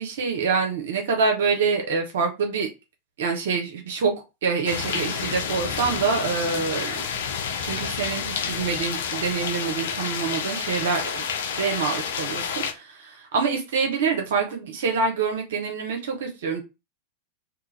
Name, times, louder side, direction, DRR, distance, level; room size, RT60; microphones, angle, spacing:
voice 1, 0.0-2.7 3.2-4.1 4.4-7.1 7.6-11.2 11.6-16.6, right 5 dB, 60° right, 0.5 m, -26 dB
sound 1, 4.7-12.7, left 7 dB, 60° left, 0.4 m, -29 dB
2.3 x 2.3 x 3.1 m
figure-of-eight pair, 90°, 0 cm